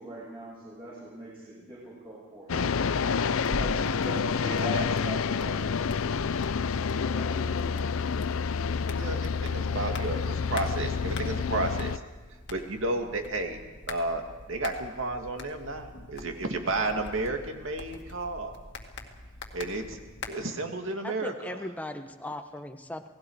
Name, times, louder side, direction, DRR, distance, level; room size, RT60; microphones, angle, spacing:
voice 1, 0.0-2.8 3.4-6.3 6.9-7.9, right 1 dB, 25° right, -7 dB, 6.5 m, -41 dB
sound 1, 2.5-12.0, left 5 dB, 75° left, 0.5 m, -28 dB
sound 2, 3.4-20.3, left 2 dB, 55° left, 2.0 m, -44 dB
voice 2, 9.0-12.0 12.5-13.6 13.9-18.5 19.5-20.0 20.3-21.6, right 2 dB, 65° right, 4 dB, 2.4 m, -32 dB
voice 3, 21.0-23.1, left 1 dB, 5° left, 6 dB, 1.1 m, -38 dB
29.0 x 19.0 x 4.9 m, 1.3 s
head